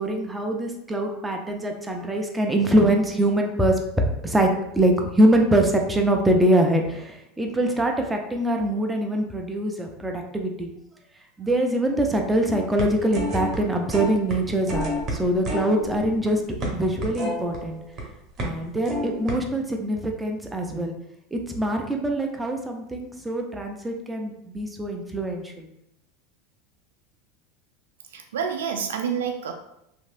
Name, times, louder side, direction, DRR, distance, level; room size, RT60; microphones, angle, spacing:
voice 1, 0.0-3.8 4.2-10.7 11.4-16.4 16.7-17.8 18.4-20.9 21.3-25.7, right 1 dB, 10° right, 2 dB, 0.5 m, -23 dB
sound 1, 12.5-13.6 13.9-14.4 14.7-18.0 18.4-18.6 18.8-19.3, equal, 40° right, 0.9 m, -30 dB
voice 2, 28.0-29.5, right 7 dB, 80° right, 4 dB, 0.4 m, -28 dB
3.0 x 2.6 x 2.5 m, 0.80 s
hypercardioid pair, 90°, 0 cm